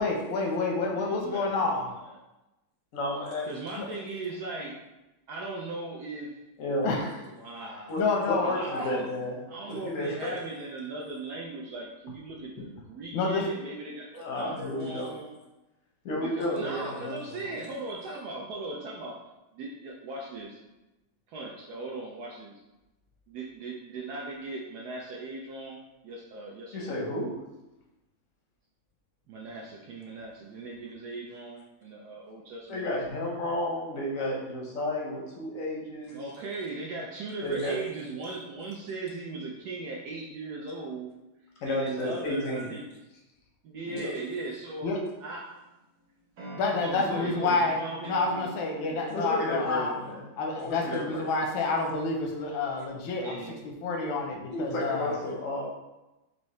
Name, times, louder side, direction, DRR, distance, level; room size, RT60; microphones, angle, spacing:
voice 1, 0.0-1.9 3.8-3.9 6.8-7.1 8.0-8.9 13.1-13.4 44.8-45.0 46.6-49.9 50.4-53.4 53.6-55.1, left 3 dB, 85° left, 1 dB, 1.5 m, -28 dB
voice 2, 0.9-2.1 3.5-4.8 5.3-6.4 7.3-8.1 8.4-9.1 9.5-15.4 16.2-19.2 19.5-20.6 21.3-22.6 23.3-27.0 29.3-33.3 36.1-41.1 41.7-42.8 43.6-44.9 45.2-45.5 46.8-48.6 48.9-49.1 52.4-53.6, right 3 dB, 75° right, -2 dB, 0.9 m, -39 dB
voice 3, 2.9-3.5 6.6-6.9 7.9-9.4 9.7-10.4 14.1-15.1 16.0-17.5 26.7-27.3 32.7-36.2 37.4-37.8 41.6-42.7 43.8-44.1 49.1-50.2 50.6-51.2 54.5-55.6, left 1 dB, 65° left, -2 dB, 0.8 m, -32 dB
sound 1, 44.8-45.7 46.4-50.0, right 2 dB, 60° right, 1.2 m, -45 dB
4.5 x 2.7 x 3.1 m, 1.0 s
omnidirectional pair, 2.2 m